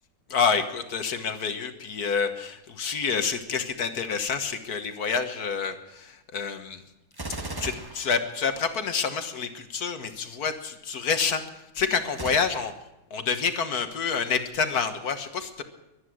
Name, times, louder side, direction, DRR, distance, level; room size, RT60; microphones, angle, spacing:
voice 1, 0.3-6.8 7.6-11.4 11.7-12.7 13.1-15.6, left 6 dB, 55° left, 8 dB, 1.7 m, -28 dB
Gunshot gunfire, 7.1-8.9 12.1-12.4, right 2 dB, 15° right, 1.0 m, -36 dB
23.5 x 9.9 x 6.3 m, 0.94 s
omnidirectional pair, 2.0 m